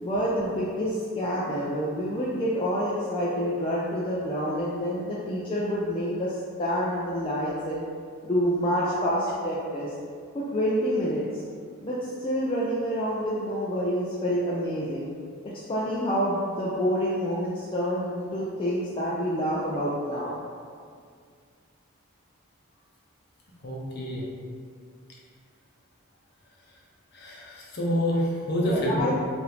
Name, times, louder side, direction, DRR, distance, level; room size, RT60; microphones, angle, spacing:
voice 1, 0.0-7.8 8.2-9.9 10.3-11.4 11.8-15.1 15.4-20.3 28.7-29.1, equal, 25° left, -7 dB, 0.3 m, -28 dB
voice 2, 23.6-24.2 27.1-29.1, equal, 50° left, -3 dB, 0.7 m, -28 dB
4.7 x 2.6 x 3.2 m, 2.1 s
head